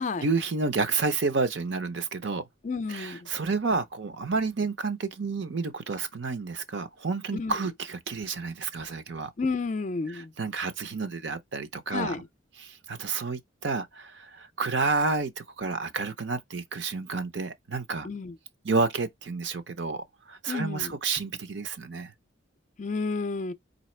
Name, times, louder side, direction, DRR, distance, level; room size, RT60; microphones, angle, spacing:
voice 1, 0.2-2.4 2.9-9.3 10.1-12.2 12.6-18.1 18.6-22.1, right 4 dB, 65° right, 0.6 m, -30 dB
voice 2, 2.6-3.2 7.3-7.5 9.4-10.3 11.9-12.2 18.0-18.4 20.5-20.9 22.8-23.5, left 4 dB, 40° left, 0.4 m, -31 dB
4.0 x 3.3 x 3.2 m
head